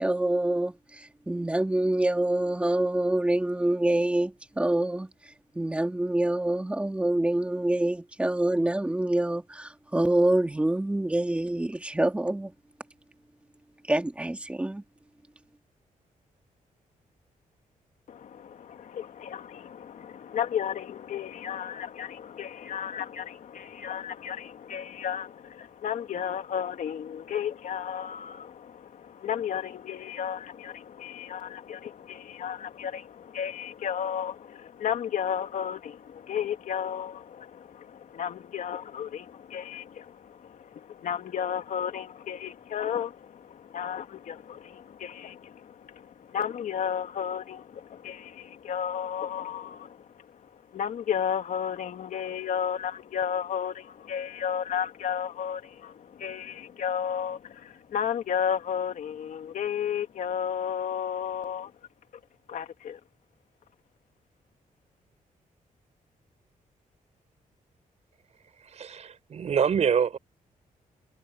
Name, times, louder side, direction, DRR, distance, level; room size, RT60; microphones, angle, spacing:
voice 1, 0.0-12.5 13.9-14.8, right 1 dB, 10° right, 2.3 m, -26 dB
voice 2, 18.1-61.7 62.5-63.0, left 8 dB, 65° left, 2.4 m, -33 dB
voice 3, 68.4-70.2, right 7 dB, 50° right, 4.7 m, -26 dB
wide cardioid pair, 165°, 14 cm